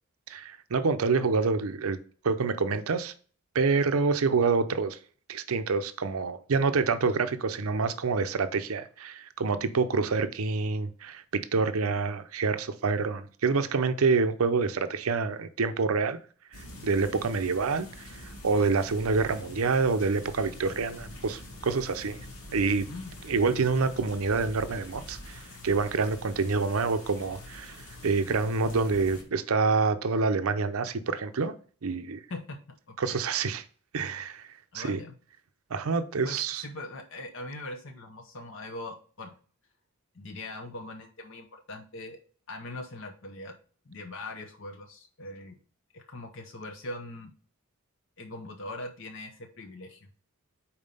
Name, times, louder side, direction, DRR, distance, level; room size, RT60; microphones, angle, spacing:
voice 1, 0.3-2.0 2.2-3.1 3.5-5.0 5.3-16.2 16.6-17.9 18.1-22.2 22.5-22.9 23.2-31.5 31.8-32.2 33.0-33.6 33.9-34.5 34.7-35.0 35.7-36.6, right 4 dB, 80° right, 0.6 m, -27 dB
sound 1, 16.5-29.2, left 1 dB, 85° left, 2.1 m, -45 dB
voice 2, 32.3-33.2 34.7-35.1 36.2-39.3 40.1-42.2 42.5-43.5 43.9-45.6 45.9-47.3 48.2-50.1, left 2 dB, 60° left, 0.8 m, -41 dB
5.4 x 4.3 x 5.3 m
head